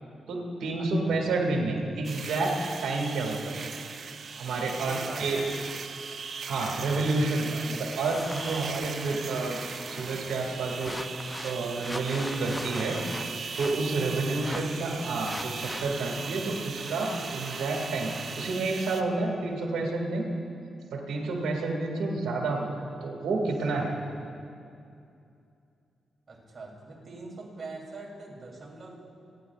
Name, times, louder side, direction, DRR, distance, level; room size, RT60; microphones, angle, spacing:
voice 1, 0.3-3.6 4.4-5.4 6.5-9.6 9.9-11.0 11.4-13.0 13.6-20.3 20.9-22.7 23.0-23.9, right 3 dB, 80° right, 0 dB, 2.1 m, -29 dB
voice 2, 0.8-1.3 4.8-5.5 14.0-15.3 26.3-29.0, right 3 dB, 45° right, -3 dB, 3.2 m, -43 dB
sound 1, 2.0-19.0, right 5 dB, 60° right, 0.6 m, -39 dB
sound 2, 8.0-18.5, left 1 dB, 10° left, 0.6 m, -42 dB
27.5 x 10.5 x 2.4 m, 2.6 s
cardioid pair, 60°, 0 cm